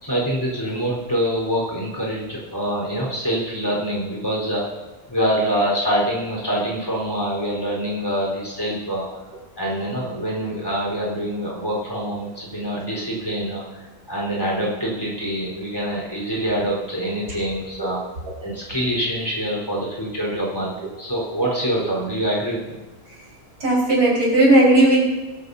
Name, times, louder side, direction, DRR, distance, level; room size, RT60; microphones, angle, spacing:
voice 1, 0.0-4.7 5.1-9.1 9.6-18.0 18.4-22.8, equal, 15° left, -4 dB, 4.5 m, -25 dB
voice 2, 23.6-25.0, right 1 dB, 90° right, -5 dB, 5.8 m, -15 dB
23.0 x 12.5 x 2.8 m, 1.2 s
omnidirectional pair, 1.6 m